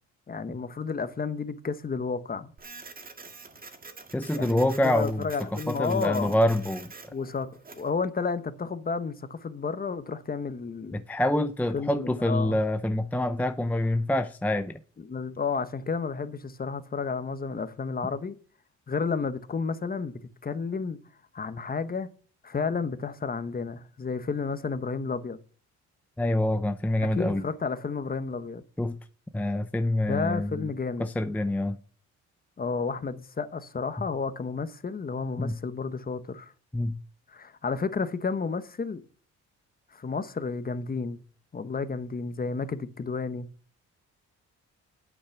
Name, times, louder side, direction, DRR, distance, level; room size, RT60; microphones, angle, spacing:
voice 1, 0.3-2.5 4.3-6.4 7.1-7.5 7.8-11.0 11.7-12.6 15.0-18.3 18.9-20.1 20.4-21.0 21.3-22.1 22.4-25.4 27.0-28.6 30.1-31.1 32.6-36.5 37.3-39.0 39.9-41.2 41.5-43.5, left 5 dB, 30° left, 1.1 m, -31 dB
Printer, 2.6-7.9, right 4 dB, 30° right, 1.9 m, -46 dB
voice 2, 4.1-6.9 10.9-14.8 26.2-27.4 28.8-29.0 29.3-30.7 31.0-31.8 35.4-35.6 36.7-37.0, left 1 dB, 5° left, 0.6 m, -26 dB
8.8 x 8.6 x 5.9 m
cardioid pair, 90°, 30 cm